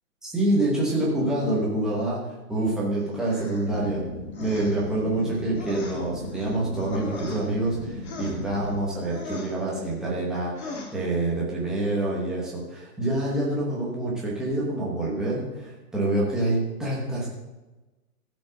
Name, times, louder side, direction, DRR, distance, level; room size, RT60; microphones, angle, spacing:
voice 1, 0.2-2.2 2.5-4.0 4.4-17.3, right 1 dB, ahead, -5 dB, 1.0 m, -26 dB
sound 1, 3.2-3.7 4.3-4.9 5.2-7.8 8.0-8.8 9.1-9.6 10.6-11.0, left 3 dB, 45° left, 2.0 m, -39 dB
sound 2, 3.7-8.8, left 2 dB, 25° left, 1.8 m, -38 dB
14.5 x 5.2 x 6.3 m, 1.1 s
hypercardioid pair, 165°, 45 cm